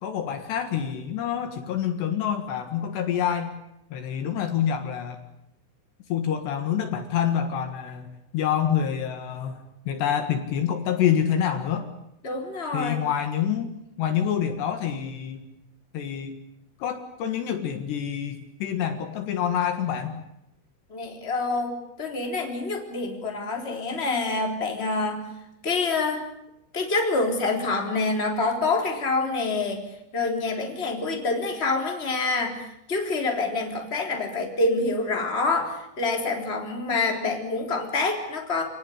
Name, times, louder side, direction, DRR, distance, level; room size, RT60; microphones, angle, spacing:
voice 1, 0.0-3.5 3.9-5.2 6.1-11.9 12.7-13.7 14.0-15.5 15.9-16.4 16.8-20.2, left 9 dB, 70° left, 7 dB, 3.6 m, -27 dB
voice 2, 12.2-13.0 20.9-25.3 25.6-26.2 26.7-29.8 30.1-38.6, left 3 dB, 15° left, 2 dB, 3.4 m, -26 dB
28.0 x 18.5 x 10.0 m, 0.86 s
omnidirectional pair, 5.5 m